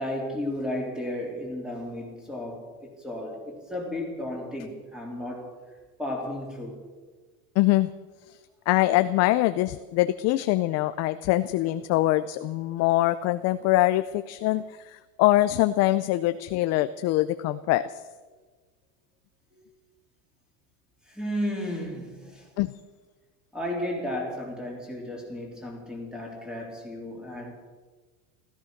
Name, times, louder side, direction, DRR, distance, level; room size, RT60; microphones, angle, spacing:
voice 1, 0.0-5.5 6.0-6.8 19.5-19.6 21.1-22.5 23.5-27.5, left 1 dB, ahead, 0 dB, 3.5 m, -33 dB
voice 2, 7.6-7.9 8.3-8.4 8.7-18.0 22.6-22.7, left 16 dB, 40° left, 12 dB, 0.5 m, -23 dB
15.5 x 13.5 x 6.5 m, 1.3 s
supercardioid pair, 145°, 43 cm